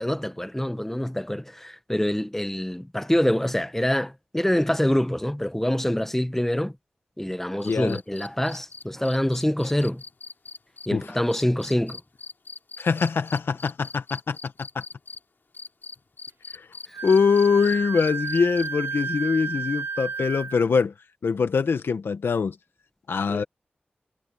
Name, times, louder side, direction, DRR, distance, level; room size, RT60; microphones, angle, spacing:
voice 1, 0.0-6.7 7.2-10.0 10.9-12.0 16.9-17.0 23.3-23.4, left 1 dB, 10° left, 1.2 m, -25 dB
sound 1, 7.6-15.2 15.5-18.9 20.5-20.6, left 4 dB, 65° left, 3.7 m, -42 dB
voice 2, 7.7-8.0 10.9-11.0 12.8-14.8 16.5-16.7 17.0-20.9 21.2-22.6 23.1-23.4, left 5 dB, 85° left, 1.4 m, -23 dB
Wind instrument woodwind instrument, 16.9-20.6, right 5 dB, 80° right, 0.6 m, -32 dB
cardioid pair, 40°, 4 cm